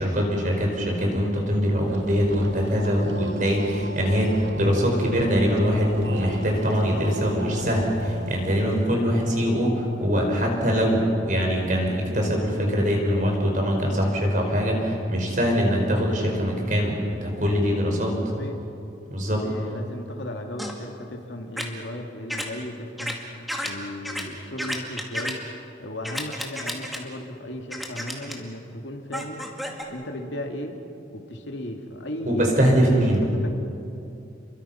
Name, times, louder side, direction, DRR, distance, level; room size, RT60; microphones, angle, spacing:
voice 1, 0.0-18.2 19.1-19.4 32.3-33.2, equal, 45° right, 1 dB, 5.2 m, -23 dB
sound 1, 1.8-8.8, right 2 dB, 70° right, 1.0 m, -37 dB
Speech, 5.8-7.7 8.0-8.9 10.3-11.0, right 1 dB, 90° right, 3.8 m, -42 dB
voice 2, 18.3-18.6 19.3-23.3 23.6-25.5 25.8-30.8 31.1-33.0 33.3-33.5, left 1 dB, 80° left, 2 dB, 2.5 m, -36 dB
sound 2, 20.6-20.7 21.6-21.7 22.3-22.4 23.0-23.1 23.5-23.7 24.0-24.2 24.6-25.3 26.0-27.0 27.7-28.3 29.1-29.8, equal, ahead, 2.1 m, -31 dB
30.0 x 23.0 x 5.8 m, 2.7 s
head